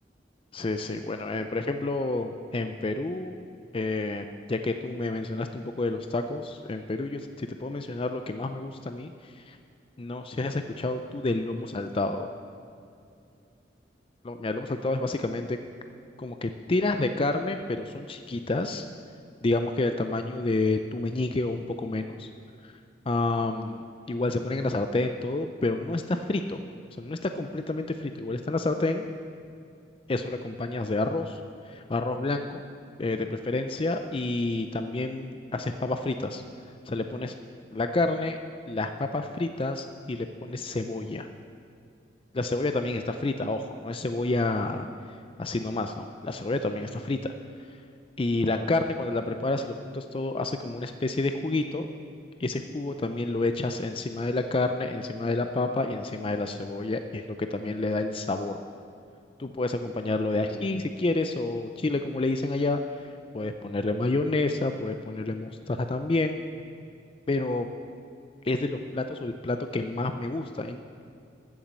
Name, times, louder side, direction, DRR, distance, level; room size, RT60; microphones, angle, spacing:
voice 1, 0.5-3.4 3.7-9.6 10.0-12.3 14.3-15.6 16.2-18.8 19.4-22.3 22.6-22.7 23.1-23.8 24.1-26.6 27.0-29.1 30.1-31.4 31.7-32.6 33.0-36.4 36.9-37.3 37.7-38.4 38.7-41.3 42.3-44.9 45.4-47.3 48.2-51.9 52.4-57.2 57.5-58.6 59.4-62.8 63.3-66.4 67.3-67.7 68.4-70.8, left 2 dB, 30° left, 7 dB, 0.4 m, -29 dB
12.5 x 7.2 x 8.2 m, 2.5 s
head